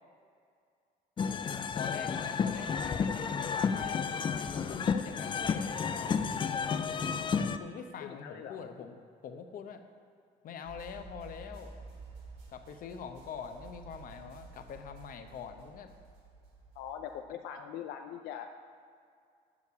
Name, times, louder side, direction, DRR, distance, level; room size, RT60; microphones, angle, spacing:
sound 1, 1.2-7.6, left 6 dB, 30° left, 0.4 m, -32 dB
voice 1, 1.7-6.6 7.5-8.9 9.2-9.8 10.4-11.8 12.5-15.9, left 6 dB, 55° left, 7 dB, 0.8 m, -44 dB
voice 2, 8.0-8.6 16.7-18.5, left 9 dB, 85° left, 5 dB, 0.5 m, -42 dB
sound 2, 10.6-17.3, right 3 dB, 85° right, 1.7 m, -51 dB
7.2 x 6.7 x 6.9 m, 2.3 s
cardioid pair, 110°, 17 cm